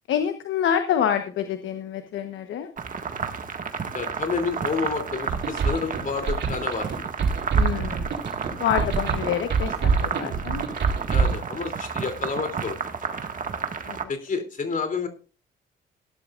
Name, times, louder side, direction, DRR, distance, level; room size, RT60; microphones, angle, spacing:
voice 1, 0.1-2.7 7.5-8.1 8.6-9.7 10.0-10.6 13.9-14.0, left 9 dB, 75° left, 8 dB, 1.2 m, -26 dB
sound 1, 2.8-14.0, right 6 dB, 45° right, 1.8 m, -31 dB
voice 2, 3.9-6.9 11.1-12.8 14.1-15.1, left 4 dB, 40° left, 6 dB, 3.1 m, -29 dB
sound 2, 5.3-11.4, right 5 dB, 65° right, 4.2 m, -25 dB
16.5 x 11.5 x 2.5 m, 0.36 s
cardioid pair, 90°, 20 cm